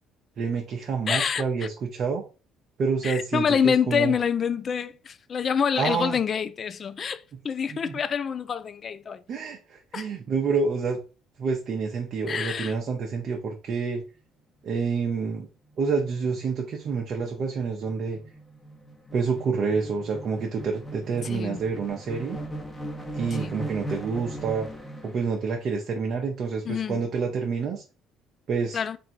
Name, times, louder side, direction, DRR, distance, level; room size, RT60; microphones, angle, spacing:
voice 1, 0.4-2.2 2.8-4.2 5.8-6.2 7.7-8.0 9.3-11.0 11.4-14.0 14.6-15.5 15.8-18.2 19.1-22.4 23.2-24.7 25.0-27.8 28.5-28.8, right 5 dB, 55° right, 0.7 m, -28 dB
voice 2, 1.1-1.4 3.0-9.2 9.9-10.1 12.3-12.8 21.2-21.6 23.3-23.6 26.6-27.0 28.7-29.0, left 7 dB, 45° left, 0.4 m, -26 dB
sound 1, 14.6-14.9 15.3-15.4 15.7-25.3, right 1 dB, 15° left, 1.1 m, -39 dB
3.1 x 2.6 x 4.4 m
supercardioid pair, 80°, 0 cm